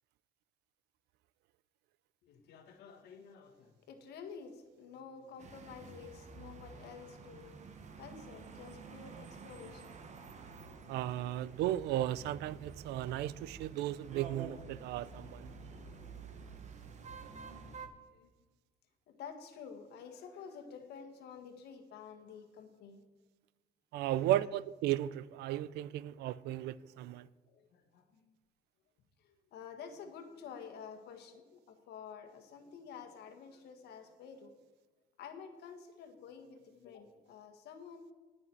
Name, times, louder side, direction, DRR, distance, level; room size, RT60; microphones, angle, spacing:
voice 1, 2.2-10.0 17.3-18.3 19.1-23.0 24.0-24.4 27.5-28.3 29.2-34.5 35.2-38.1, left 6 dB, 75° left, 1.6 m, -51 dB
sound 1, 5.4-17.9, right 5 dB, 45° right, 1.2 m, -50 dB
voice 2, 10.9-15.5 23.9-27.3, right 13 dB, 80° right, 0.4 m, -35 dB
18.5 x 6.2 x 4.5 m
cardioid pair, 110°, 17 cm